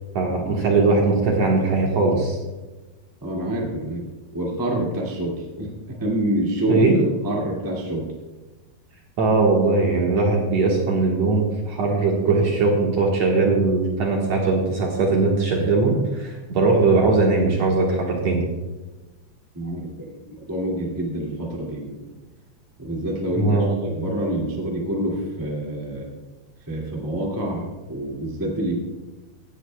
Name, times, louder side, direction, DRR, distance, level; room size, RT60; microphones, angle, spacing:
voice 1, 0.1-2.4 6.7-6.9 9.2-18.5 23.4-23.8, right 3 dB, 60° right, -1 dB, 2.0 m, -20 dB
voice 2, 3.2-4.0 4.3-7.0 7.2-8.1 19.5-20.2 20.5-22.1 22.8-26.1 26.7-28.7, right 1 dB, 20° right, -3 dB, 0.5 m, -27 dB
16.5 x 11.0 x 2.2 m, 1.2 s
omnidirectional pair, 4.5 m